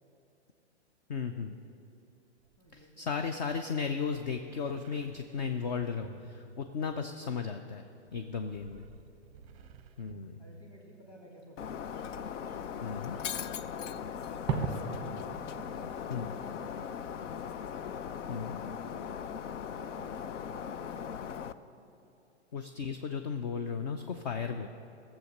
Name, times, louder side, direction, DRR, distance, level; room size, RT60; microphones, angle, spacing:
voice 1, 1.1-1.6 2.7-8.8 10.0-10.4 12.8-13.2 16.1-16.3 18.3-18.6 22.5-24.7, left 6 dB, 35° left, 6 dB, 0.5 m, -35 dB
sound 1, 2.4-7.3 8.0-11.4 12.1-12.2, right 5 dB, 30° right, 0.6 m, -55 dB
voice 2, 2.6-3.2 9.3-9.9 10.4-11.9 12.3-15.0 15.5-17.2 17.6-18.6 18.9-22.1, equal, 15° left, -2 dB, 2.0 m, -56 dB
Shatter, 11.6-21.5, left 8 dB, 85° left, 0.6 m, -39 dB
Fireworks, 11.8-17.5, right 5 dB, 15° right, 0.9 m, -41 dB
15.5 x 7.3 x 6.6 m, 2.7 s
hypercardioid pair, 155°, 36 cm